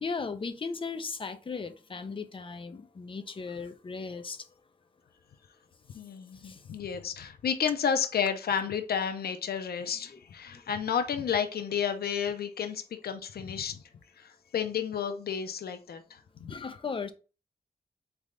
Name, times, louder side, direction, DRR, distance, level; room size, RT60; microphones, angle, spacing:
voice 1, 0.0-4.5 6.4-6.6 9.9-10.2 10.5-10.6 16.5-17.1, left 4 dB, 35° left, 0.5 m, -37 dB
voice 2, 5.9-13.8 14.2-16.5, left 7 dB, 85° left, 0.5 m, -31 dB
4.2 x 3.4 x 3.7 m
wide cardioid pair, 170°, 16 cm